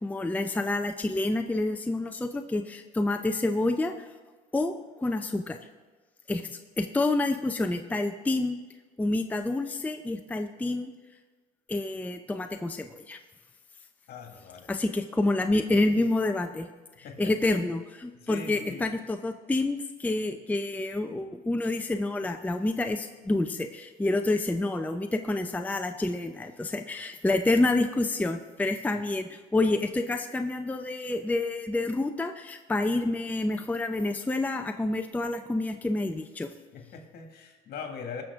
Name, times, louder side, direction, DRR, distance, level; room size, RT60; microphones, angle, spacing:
voice 1, 0.0-4.1 4.5-5.6 6.3-8.6 9.0-10.9 11.7-13.2 14.7-16.7 17.0-36.5, left 2 dB, 10° left, 6 dB, 0.6 m, -28 dB
voice 2, 14.1-14.8 17.0-17.3 18.2-18.9 36.7-38.2, left 5 dB, 60° left, 3 dB, 1.9 m, -41 dB
19.0 x 6.6 x 3.6 m, 1.3 s
supercardioid pair, 90°, 18 cm